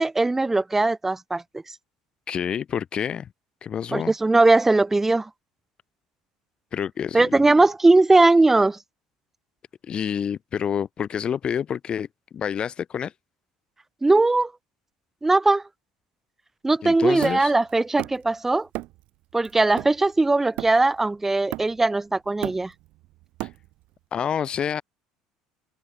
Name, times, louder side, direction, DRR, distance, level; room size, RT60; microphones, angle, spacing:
voice 1, 0.0-1.4 3.9-5.3 7.1-8.8 14.0-14.5 15.2-15.6 16.6-18.7 19.3-22.7, right 2 dB, 15° right, 0.3 m, -19 dB
voice 2, 2.3-3.3 3.6-4.1 6.7-7.5 9.8-12.1 12.3-13.1 16.8-17.5 23.4-23.5 24.1-24.8, left 8 dB, 40° left, 0.8 m, -28 dB
Hammer, 17.2-18.3 18.7-19.1 19.4-21.0 21.5-22.0 22.2-23.9, right 19 dB, 65° right, 1.1 m, -35 dB
open air
hypercardioid pair, 70°, 2 cm